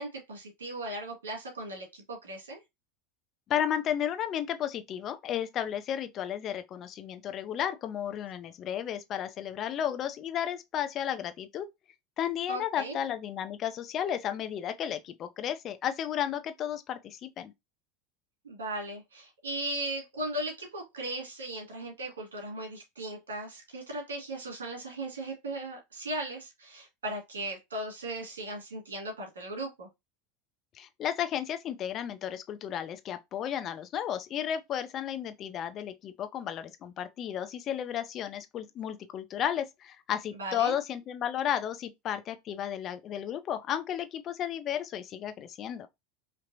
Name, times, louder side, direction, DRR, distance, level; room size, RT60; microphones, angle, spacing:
voice 1, 0.0-2.6 12.5-13.0 18.4-29.9 40.4-40.7, right 1 dB, 90° right, 1.8 m, -37 dB
voice 2, 3.5-11.7 12.2-17.5 30.7-45.9, left 10 dB, 45° left, 0.7 m, -33 dB
4.5 x 2.9 x 2.6 m
hypercardioid pair, 90°, 0 cm